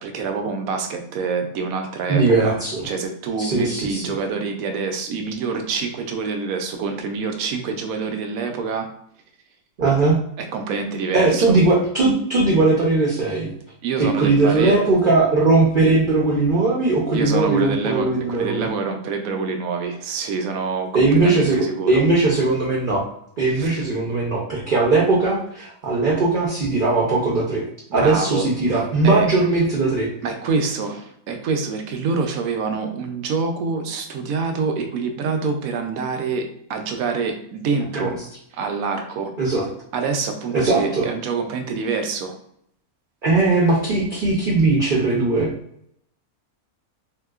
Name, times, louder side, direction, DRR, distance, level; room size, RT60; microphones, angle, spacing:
voice 1, 0.0-8.9 10.4-11.6 13.8-14.8 17.1-22.1 23.6-23.8 27.9-28.5 28.7-29.3 30.2-38.2 38.5-39.3 39.9-42.4, right 4 dB, 75° right, 5 dB, 1.0 m, -26 dB
voice 2, 2.1-2.9 3.4-4.2 9.8-10.2 11.1-13.5 14.0-18.7 20.9-23.0 23.4-27.6 27.9-30.1 37.9-38.2 39.4-39.7 40.5-41.1 43.2-45.5, right 3 dB, 50° right, -3 dB, 0.6 m, -19 dB
3.2 x 2.8 x 2.3 m, 0.71 s
omnidirectional pair, 1.6 m